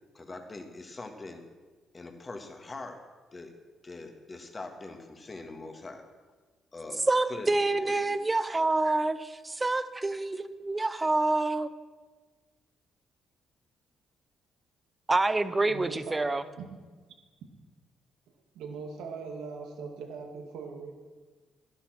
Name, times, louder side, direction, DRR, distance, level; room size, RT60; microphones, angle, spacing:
voice 1, 0.1-1.4 1.9-3.1 3.3-3.6 3.8-6.1 6.7-7.0 7.3-8.3, left 3 dB, 30° left, 5 dB, 1.8 m, -43 dB
voice 2, 7.1-11.7 15.1-16.4, right 2 dB, 20° right, 14 dB, 0.7 m, -27 dB
voice 3, 15.6-16.8 18.5-20.9, right 5 dB, 85° right, 3 dB, 2.1 m, -40 dB
12.0 x 11.5 x 6.1 m, 1.4 s
cardioid pair, 90°, 0 cm